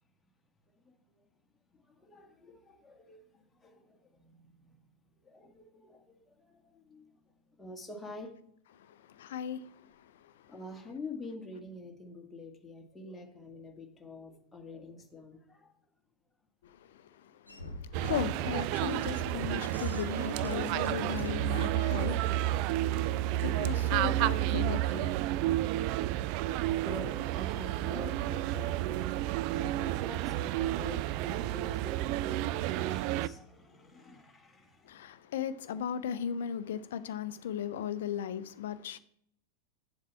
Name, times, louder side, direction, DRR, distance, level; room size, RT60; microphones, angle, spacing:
voice 1, 0.8-1.2 1.7-4.9 5.2-7.1 7.6-8.3 10.5-15.7 23.1-23.6 25.1-25.2 26.8-35.0, left 2 dB, 10° left, 1.7 m, -47 dB
voice 2, 9.2-9.6 18.0-22.2 23.4-25.1 34.9-39.0, left 9 dB, 60° left, 0.6 m, -36 dB
sound 1, 17.5-22.5, left 2 dB, 85° left, 1.0 m, -48 dB
sound 2, 17.9-33.3, right 14 dB, 45° right, 0.3 m, -31 dB
8.4 x 7.4 x 4.4 m
figure-of-eight pair, 90°, 0 cm